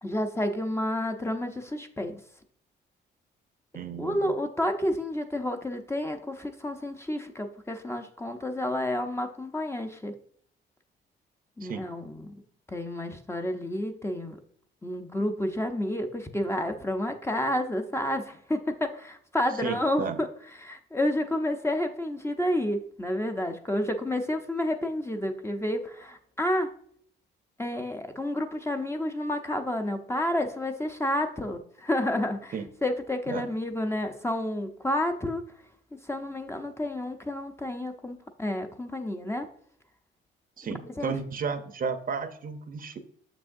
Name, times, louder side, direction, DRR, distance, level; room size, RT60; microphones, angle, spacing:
voice 1, 0.0-2.2 4.0-10.1 11.6-12.3 12.7-14.4 14.8-20.3 20.6-26.7 27.6-32.5 32.8-35.4 36.1-39.5 40.8-41.1, left 1 dB, 15° left, 5 dB, 0.7 m, -30 dB
voice 2, 3.7-4.3 11.6-11.9 19.6-20.2 32.5-32.7 33.3-33.5 40.6-43.0, right 5 dB, 45° right, 9 dB, 0.7 m, -33 dB
6.7 x 6.1 x 2.6 m, 0.62 s
cardioid pair, 90°, 20 cm